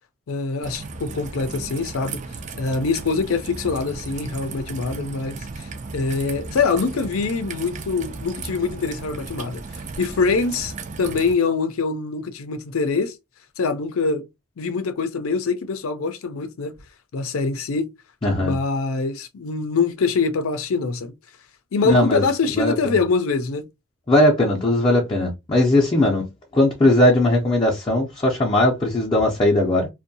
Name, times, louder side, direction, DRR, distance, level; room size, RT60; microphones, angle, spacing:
voice 1, 0.3-2.2 2.6-9.6 10.0-10.7 11.0-13.1 13.6-14.3 14.6-16.7 17.1-17.9 18.4-21.1 21.7-23.6, left 4 dB, 90° left, 0.5 m, -24 dB
Raindrop / Trickle dribble, 0.6-11.3, right 4 dB, 35° right, 0.3 m, -35 dB
voice 2, 18.2-18.5 21.8-22.2 22.6-22.7 24.1-29.9, left 1 dB, 25° left, 0.5 m, -19 dB
2.6 x 2.2 x 2.6 m
head